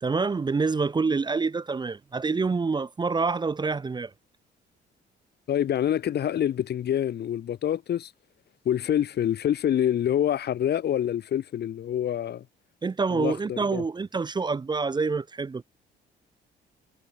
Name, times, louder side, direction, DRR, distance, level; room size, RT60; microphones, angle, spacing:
voice 1, 0.0-4.1 12.8-15.6, right 4 dB, 20° right, 0.5 m, -27 dB
voice 2, 5.5-8.1 8.6-12.4 13.1-13.8, left 10 dB, 55° left, 0.8 m, -26 dB
cardioid pair, 90°, 20 cm